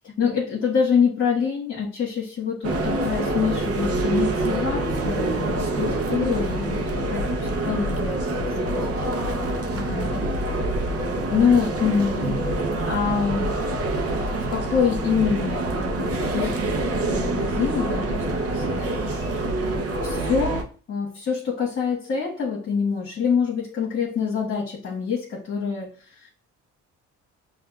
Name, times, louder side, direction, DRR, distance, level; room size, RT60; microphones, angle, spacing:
voice 1, 0.2-9.1 9.7-10.2 11.3-12.4 12.9-13.5 14.5-19.4 19.7-25.9 26.2-26.3, left 6 dB, 45° left, -3 dB, 1.4 m, -26 dB
sound 1, 2.6-20.6, right 2 dB, 50° right, 0.8 m, -26 dB
5.6 x 2.5 x 2.3 m, 0.38 s
cardioid pair, 90°, 30 cm